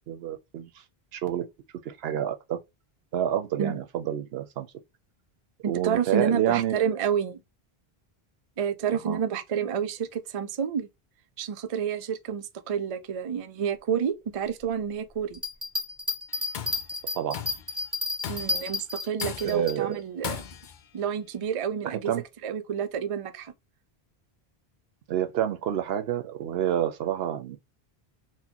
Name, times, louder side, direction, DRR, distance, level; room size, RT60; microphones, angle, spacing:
voice 1, 0.1-0.7 1.1-1.5 1.8-2.6 3.1-4.7 5.7-6.9 9.0-9.2 17.1-17.4 19.4-20.0 21.8-22.2 25.1-27.6, right 10 dB, 80° right, 0.8 m, -28 dB
voice 2, 5.6-7.4 8.6-10.9 11.4-15.4 18.3-20.4 20.9-22.1 22.4-23.5, right 8 dB, 50° right, 0.4 m, -29 dB
sound 1, 15.3-19.8, left 2 dB, 15° right, 1.1 m, -31 dB
Tools, 16.3-16.9 17.3-17.7 18.2-18.7 19.2-19.7 20.2-20.8, left 8 dB, 60° left, 0.6 m, -36 dB
4.1 x 2.1 x 2.8 m
omnidirectional pair, 1.0 m